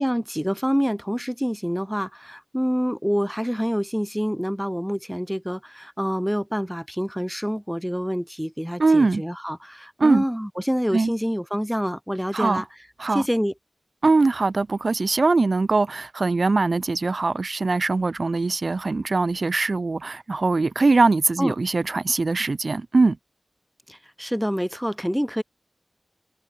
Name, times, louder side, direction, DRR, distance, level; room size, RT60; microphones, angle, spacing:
voice 1, 0.0-12.7 13.1-13.5 21.4-21.5 23.9-25.4, equal, ahead, 4.3 m, -26 dB
voice 2, 8.8-9.2 10.0-10.2 10.9-11.1 12.3-12.6 13.0-13.2 14.0-23.2, right 3 dB, 60° right, 3.0 m, -21 dB
cardioid pair, 45°, 0 cm